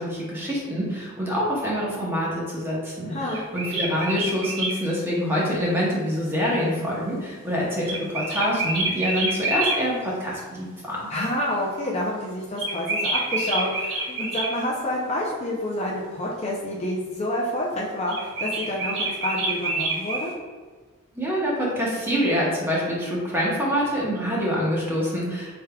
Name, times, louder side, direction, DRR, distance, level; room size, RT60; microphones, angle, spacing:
voice 1, 0.0-11.0 21.2-25.5, equal, 10° right, -5 dB, 0.9 m, -26 dB
voice 2, 3.1-3.4 11.1-20.3 25.3-25.4, left 1 dB, 30° left, -4 dB, 0.5 m, -28 dB
sound 1, 3.3-4.8 7.8-9.8 12.6-14.5 18.1-20.3, right 2 dB, 55° right, 1.0 m, -27 dB
4.7 x 3.5 x 2.3 m, 1.4 s
head